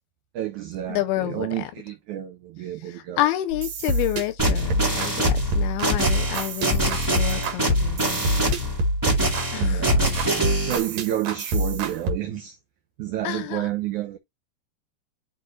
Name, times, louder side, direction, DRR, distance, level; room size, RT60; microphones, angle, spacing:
voice 1, 0.3-3.2 9.6-10.1 10.6-12.6 13.0-14.2, right 12 dB, 75° right, 1.8 m, -30 dB
voice 2, 0.9-1.7 2.8-8.3 9.5-10.1 13.2-13.7, left 14 dB, 80° left, 2.3 m, -29 dB
sound 1, 3.5-12.1, right 1 dB, 60° right, 3.1 m, -25 dB
sound 2, 4.4-10.8, equal, 15° right, 0.7 m, -25 dB
11.5 x 4.3 x 2.7 m
omnidirectional pair, 4.8 m